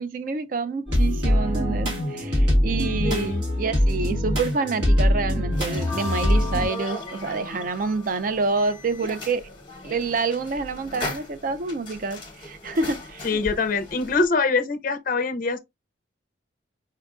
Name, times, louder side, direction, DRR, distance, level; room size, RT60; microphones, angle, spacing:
voice 1, 0.0-9.5 9.8-13.4, right 4 dB, 45° right, 0.3 m, -28 dB
sound 1, 0.9-6.7, equal, 60° right, 1.5 m, -22 dB
voice 2, 3.0-3.4 13.2-15.6, left 4 dB, 45° left, 0.5 m, -24 dB
sound 2, 5.5-14.3, left 2 dB, 25° left, 0.9 m, -39 dB
sound 3, 5.6-8.4, left 5 dB, 80° right, 2.1 m, -38 dB
4.5 x 2.4 x 2.3 m
head